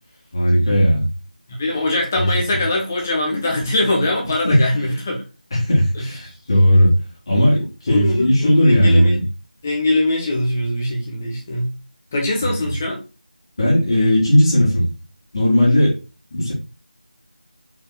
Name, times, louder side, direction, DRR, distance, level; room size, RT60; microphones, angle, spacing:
voice 1, 0.3-1.1 2.2-2.3 4.4-4.6 5.5-6.9 7.3-9.2 13.6-14.9 15.3-16.0 16.3-16.5, equal, 35° left, 2.1 m, -16 dB
voice 2, 1.5-5.2 5.9-6.3 7.9-9.2 9.6-11.7 12.1-13.0, left 1 dB, 15° left, 0.7 m, -22 dB
4.7 x 3.5 x 2.2 m
figure-of-eight pair, 170°, 5 cm